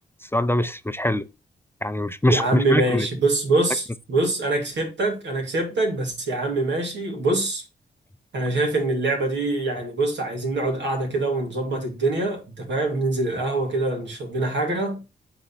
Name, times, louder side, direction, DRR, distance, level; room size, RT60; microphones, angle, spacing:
voice 1, 0.2-1.3 1.8-3.1, left 1 dB, 10° left, 0.5 m, -23 dB
voice 2, 2.3-7.6 8.3-15.0, right 2 dB, 75° right, 2.6 m, -24 dB
7.8 x 4.0 x 4.1 m
cardioid pair, 50°, 19 cm